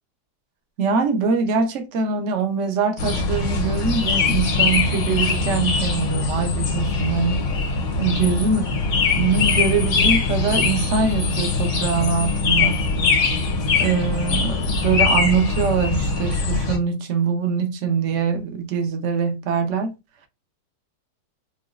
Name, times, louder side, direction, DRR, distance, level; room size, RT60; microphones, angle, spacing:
voice 1, 0.8-7.4 8.0-8.7 9.2-12.8 13.8-19.9, right 5 dB, 55° right, 0.8 m, -23 dB
sound 1, 3.0-16.8, left 4 dB, 70° left, 1.8 m, -22 dB
4.8 x 2.3 x 2.4 m
omnidirectional pair, 2.1 m